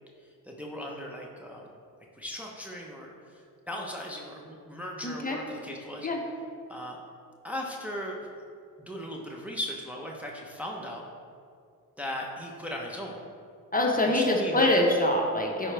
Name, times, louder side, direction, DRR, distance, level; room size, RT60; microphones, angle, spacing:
voice 1, 0.2-1.7 2.1-6.1 6.7-7.0 7.4-8.2 8.8-11.0 12.0-13.2 14.0-14.7, equal, 5° right, -2 dB, 0.9 m, -38 dB
voice 2, 5.0-5.4 6.0-6.2 13.7-15.7, left 1 dB, 25° left, 0 dB, 1.0 m, -24 dB
9.6 x 4.4 x 3.4 m, 2.3 s
cardioid pair, 75°, 36 cm